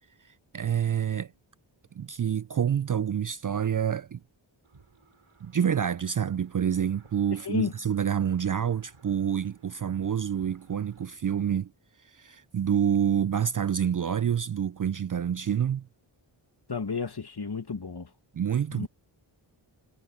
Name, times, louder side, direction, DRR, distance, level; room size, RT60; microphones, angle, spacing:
voice 1, 0.5-1.3 2.0-4.2 5.4-11.7 12.1-15.9 18.3-18.9, right 8 dB, 40° right, 0.4 m, -27 dB
sound 1, 4.6-11.1, right 4 dB, 85° right, 7.6 m, -58 dB
voice 2, 16.7-18.1 18.7-18.9, left 4 dB, 50° left, 1.9 m, -31 dB
wide cardioid pair, 50°, 50 cm